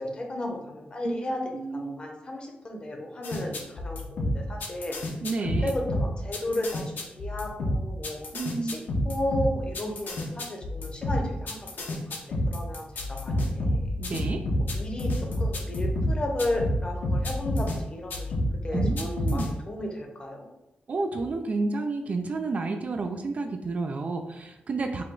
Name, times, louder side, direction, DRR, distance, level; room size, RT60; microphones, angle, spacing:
voice 1, 0.0-1.4 1.7-4.9 5.6-8.3 8.6-11.6 12.1-13.9 14.6-18.3 18.6-20.5, left 1 dB, 30° left, 1 dB, 0.8 m, -34 dB
voice 2, 1.0-2.0 5.2-5.7 8.3-8.8 14.0-14.4 18.7-19.5 20.9-25.0, right 3 dB, 45° right, 6 dB, 0.3 m, -31 dB
sound 1, 3.2-17.8 18.1-19.5, left 1 dB, 65° left, 0.8 m, -28 dB
4.9 x 2.2 x 3.7 m, 0.90 s
wide cardioid pair, 145°, 3 cm